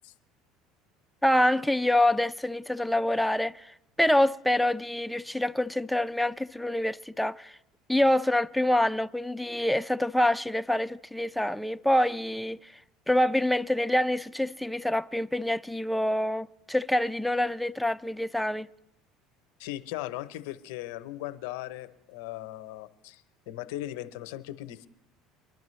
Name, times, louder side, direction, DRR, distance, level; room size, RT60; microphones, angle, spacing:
voice 1, 1.2-7.6 7.9-12.8 13.1-18.7, left 1 dB, 5° left, 0.4 m, -26 dB
voice 2, 19.6-24.9, left 15 dB, 80° left, 0.6 m, -38 dB
23.5 x 12.0 x 3.1 m
supercardioid pair, 85°, 0 cm